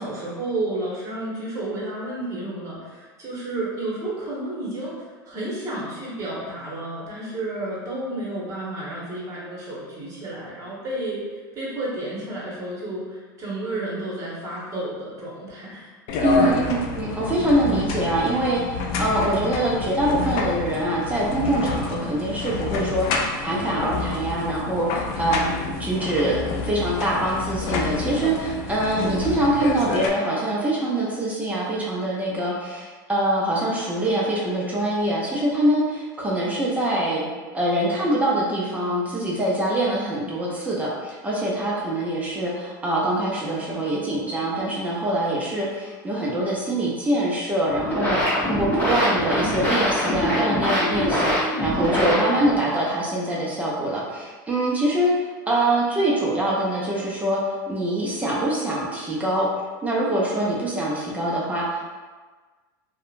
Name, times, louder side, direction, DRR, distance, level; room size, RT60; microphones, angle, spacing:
voice 1, 0.0-15.9, right 2 dB, 30° right, -6 dB, 1.1 m, -31 dB
sound 1, 16.1-30.1, left 4 dB, 60° left, 0.4 m, -28 dB
voice 2, 16.2-26.4 26.6-37.2 37.5-55.2 55.5-57.4 57.7-59.5 59.8-61.9, right 1 dB, 15° right, -5 dB, 0.5 m, -24 dB
sound 2, 47.7-52.6, equal, 15° left, 1.0 m, -23 dB
2.7 x 2.2 x 2.5 m, 1.4 s
supercardioid pair, 115°, 11 cm